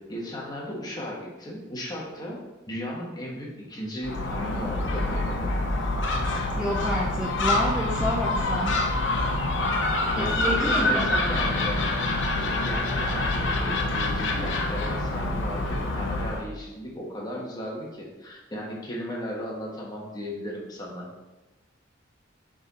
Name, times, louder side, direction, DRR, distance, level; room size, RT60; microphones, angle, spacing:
voice 1, 0.0-2.4 2.7-5.6 10.1-12.0 12.4-21.1, equal, 20° left, -3 dB, 1.3 m, -36 dB
Gull seagull, 4.0-16.5, left 2 dB, 70° left, 0.8 m, -26 dB
voice 2, 6.6-8.8 10.2-11.1, equal, 5° right, -4 dB, 0.6 m, -29 dB
6.7 x 3.8 x 4.2 m, 1.1 s
head